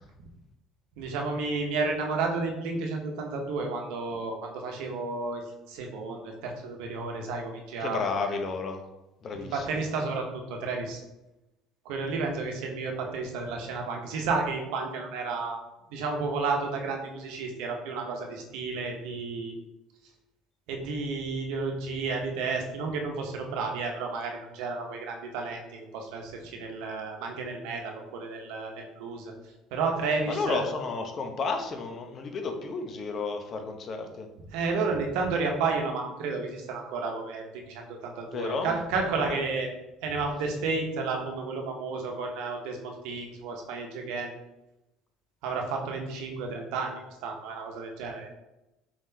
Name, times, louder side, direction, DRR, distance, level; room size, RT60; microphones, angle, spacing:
voice 1, 1.0-8.0 9.3-11.0 11.8-15.6 15.9-19.6 20.7-29.3 29.7-30.6 34.5-39.7 40.0-44.3 45.4-46.9 47.2-48.3, right 4 dB, 75° right, 2 dB, 0.9 m, -32 dB
voice 2, 7.8-8.8 9.2-9.8 30.3-34.3 38.3-39.4, left 4 dB, 45° left, 5 dB, 0.7 m, -32 dB
4.7 x 3.6 x 2.8 m, 0.97 s
supercardioid pair, 80°, 0 cm